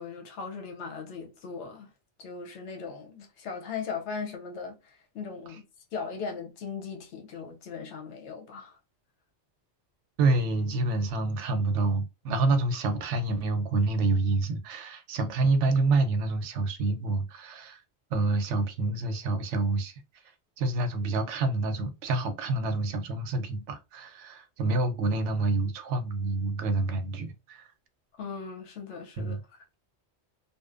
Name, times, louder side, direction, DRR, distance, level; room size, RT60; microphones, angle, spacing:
voice 1, 0.0-1.9 2.2-5.6 5.9-8.8 28.2-29.6, left 5 dB, 85° left, 0.9 m, -38 dB
voice 2, 10.2-17.8 18.1-19.9 20.6-27.7 29.2-29.4, right 3 dB, 90° right, 0.9 m, -27 dB
2.7 x 2.1 x 2.4 m
omnidirectional pair, 1.2 m